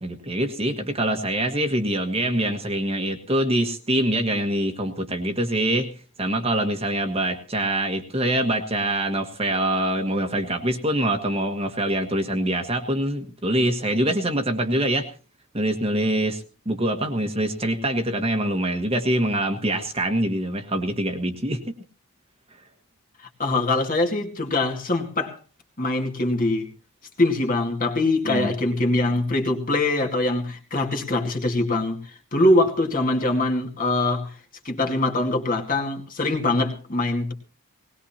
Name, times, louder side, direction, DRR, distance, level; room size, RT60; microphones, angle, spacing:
voice 1, 0.0-5.9 6.2-15.1 15.5-21.6 28.2-28.5, right 1 dB, 25° right, 1.5 m, -24 dB
voice 2, 23.2-25.4 25.8-26.7 27.2-34.3 34.6-37.3, left 2 dB, 40° left, 2.2 m, -23 dB
19.5 x 19.5 x 2.9 m
head